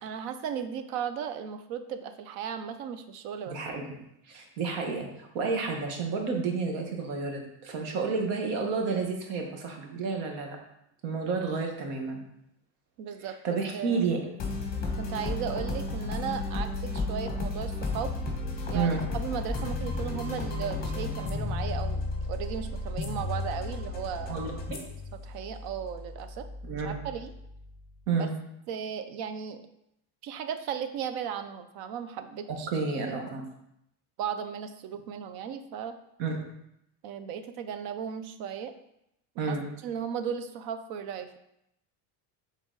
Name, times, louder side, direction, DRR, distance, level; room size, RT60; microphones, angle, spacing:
voice 1, 0.0-3.6 13.0-13.4 13.7-14.1 15.0-18.1 18.7-22.0 22.3-24.4 25.2-26.5 26.8-27.3 28.1-28.3 28.7-29.6 30.2-32.7 33.1-33.2 34.2-35.9 37.0-38.7 39.4-39.6 39.8-41.4, right 8 dB, 60° right, 9 dB, 0.6 m, -36 dB
voice 2, 3.5-4.0 4.3-10.6 11.0-12.2 13.4-14.2 18.7-19.0 24.3-24.8 26.6-27.0 28.1-28.3 32.5-33.4 36.2-36.4 39.4-39.6, right 4 dB, 85° right, 2 dB, 1.4 m, -30 dB
sound 1, 14.4-27.8, left 2 dB, 20° left, 1.2 m, -33 dB
6.2 x 3.9 x 3.9 m, 0.81 s
cardioid pair, 155°, 41 cm